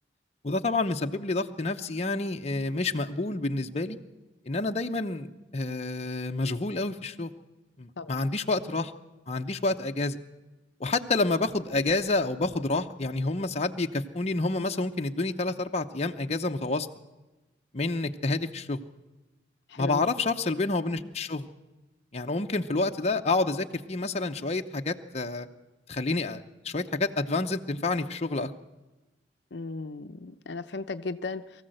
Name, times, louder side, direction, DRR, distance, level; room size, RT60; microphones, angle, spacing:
voice 1, 0.4-4.0 4.5-7.3 7.8-8.9 9.3-10.2 10.8-16.9 17.7-18.8 19.8-21.5 22.1-25.5 25.9-28.5, left 3 dB, 35° left, 5 dB, 0.8 m, -29 dB
voice 2, 19.7-20.0 29.5-31.6, left 3 dB, 65° left, 9 dB, 0.7 m, -36 dB
23.0 x 14.5 x 7.8 m, 1.1 s
head